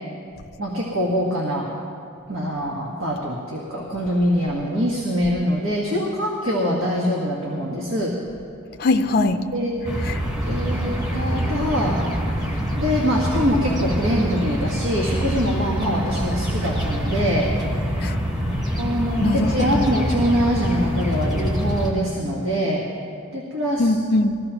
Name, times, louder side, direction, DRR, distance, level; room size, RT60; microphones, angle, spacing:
voice 1, 0.6-1.7 2.3-8.1 9.5-9.8 10.5-12.0 12.4-17.5 18.8-22.8 23.3-23.9, equal, 70° right, -2 dB, 1.6 m, -24 dB
voice 2, 8.8-9.4 18.0-18.2 19.2-19.9 23.8-24.4, left 2 dB, 45° left, 6 dB, 0.5 m, -20 dB
sound 1, 9.8-21.9, equal, 20° right, 2.5 m, -25 dB
21.0 x 15.0 x 3.0 m, 2.5 s
head